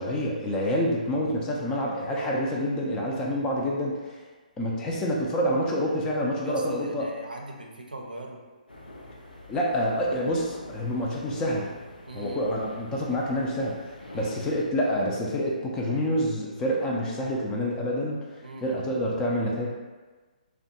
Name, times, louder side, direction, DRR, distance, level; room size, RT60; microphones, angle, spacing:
voice 1, 0.0-4.1 4.6-7.1 9.5-11.7 12.1-19.7, equal, 15° left, -3 dB, 0.4 m, -27 dB
voice 2, 6.4-8.4 12.1-12.4 14.1-14.3 18.4-18.8, right 2 dB, 90° right, 1 dB, 0.4 m, -41 dB
sound 1, 8.7-14.6, left 1 dB, 90° left, 0.5 m, -45 dB
2.5 x 2.2 x 2.7 m, 1.3 s
figure-of-eight pair, 135°, 5 cm